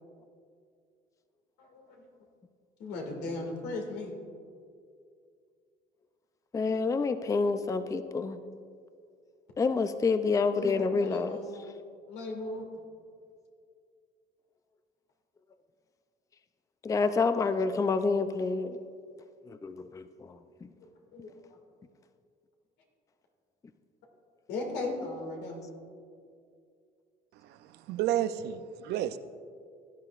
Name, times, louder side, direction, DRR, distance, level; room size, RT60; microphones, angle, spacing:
voice 1, 1.6-2.1 2.8-4.1 10.6-11.8 12.1-12.6 18.4-18.5 20.8-20.9 21.1-21.3 24.5-25.6, left 2 dB, 85° left, 1 dB, 2.2 m, -37 dB
voice 2, 6.5-8.4 9.6-11.4 16.8-18.8 19.5-20.7, left 4 dB, 20° left, 10 dB, 0.4 m, -28 dB
voice 3, 27.3-29.2, right 11 dB, 80° right, 12 dB, 0.5 m, -32 dB
16.5 x 10.5 x 2.5 m, 2.3 s
cardioid pair, 110°, 17 cm